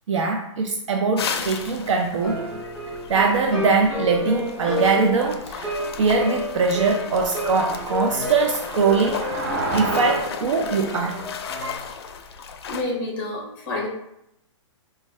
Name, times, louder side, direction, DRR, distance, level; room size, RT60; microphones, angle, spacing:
voice 1, 0.1-2.6 2.9-11.2, right 4 dB, 70° right, 1 dB, 0.6 m, -22 dB
sound 1, 1.2-12.8, left 6 dB, 50° left, 0.4 m, -35 dB
sound 2, 2.2-11.8, left 1 dB, 10° right, 1.1 m, -31 dB
sound 3, 4.6-10.2, right 2 dB, 35° right, 0.7 m, -33 dB
voice 2, 12.7-13.9, left 2 dB, 10° left, -3 dB, 0.6 m, -28 dB
4.4 x 2.3 x 3.2 m, 0.79 s
hypercardioid pair, 175°, 16 cm